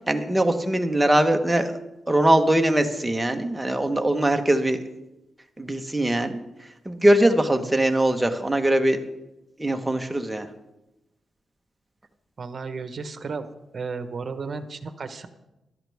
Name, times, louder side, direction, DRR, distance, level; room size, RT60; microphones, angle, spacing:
voice 1, 0.1-1.7 2.1-4.8 5.6-6.4 6.8-9.0 9.6-10.5, right 1 dB, 10° right, 5 dB, 1.2 m, -21 dB
voice 2, 12.4-13.5 13.7-15.3, right 4 dB, 50° right, 9 dB, 1.1 m, -33 dB
15.5 x 12.0 x 3.5 m, 0.97 s
cardioid pair, 100°, 0 cm